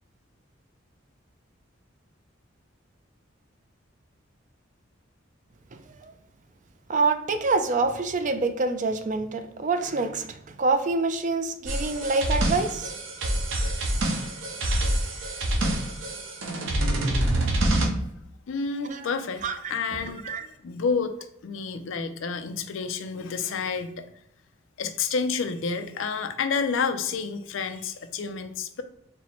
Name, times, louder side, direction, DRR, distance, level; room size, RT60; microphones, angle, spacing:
voice 1, 6.9-12.9 18.8-19.1 19.4-19.7 20.0-20.5, right 3 dB, 40° right, 8 dB, 0.4 m, -26 dB
sound 1, 11.6-17.9, right 1 dB, 80° right, 0.9 m, -26 dB
voice 2, 18.5-21.1 21.4-24.1 24.8-28.8, left 5 dB, 80° left, 9 dB, 0.4 m, -29 dB
4.3 x 2.1 x 4.1 m, 0.80 s
head